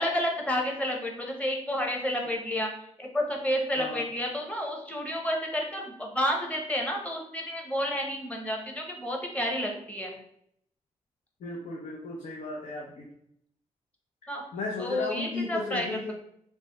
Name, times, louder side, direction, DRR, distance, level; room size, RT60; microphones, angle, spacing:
voice 1, 0.0-2.7 3.0-10.1 14.3-14.4 14.8-16.0, equal, 10° left, 1 dB, 0.9 m, -30 dB
voice 2, 11.4-13.1 14.5-16.1, left 3 dB, 80° left, -3 dB, 0.7 m, -35 dB
3.2 x 2.2 x 4.0 m, 0.71 s
cardioid pair, 60°, 13 cm